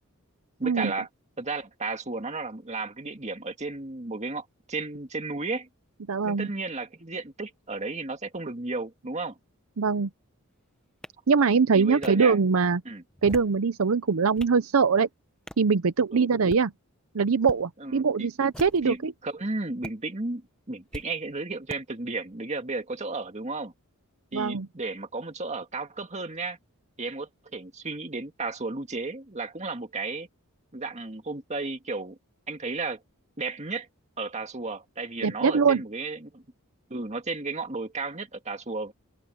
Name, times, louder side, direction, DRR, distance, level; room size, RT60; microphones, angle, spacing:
voice 1, 0.6-1.1 1.4-5.7 6.2-9.4 11.7-12.4 12.9-13.0 16.1-16.3 17.8-18.3 18.8-20.4 20.7-23.7 24.3-26.6 27.0-30.3 30.7-32.2 32.5-33.0 33.4-33.9 34.2-36.4 36.9-38.9, right 3 dB, 30° right, 1.9 m, -33 dB
voice 2, 6.1-6.5 9.8-10.1 11.3-12.8 13.2-15.1 15.6-16.7 17.1-19.1 24.3-24.7 35.2-35.8, right 5 dB, 70° right, 0.6 m, -22 dB
sound 1, 11.0-11.1 12.0-12.1 13.1-13.6 14.1-14.6 15.5-15.7 16.3-16.7 17.4-17.6 18.5-19.0 19.8-19.9 20.9-21.1 21.7-21.8, equal, 5° left, 0.8 m, -41 dB
head